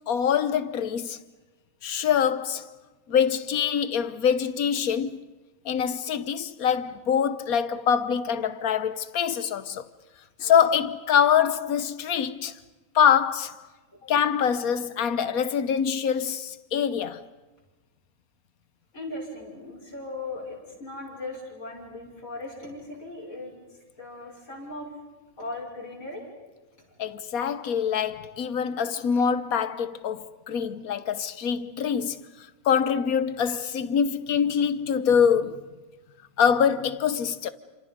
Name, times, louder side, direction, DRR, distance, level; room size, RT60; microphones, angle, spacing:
voice 1, 0.1-1.2 1.8-2.7 3.1-5.2 5.6-9.8 10.4-12.5 12.9-13.5 14.1-17.2 27.0-32.2 32.6-35.8 36.4-37.5, left 7 dB, 90° left, 1.5 m, -24 dB
voice 2, 18.9-23.5 24.0-24.9 25.4-26.2, left 2 dB, 75° left, 6.1 m, -38 dB
28.5 x 27.0 x 5.4 m
omnidirectional pair, 1.5 m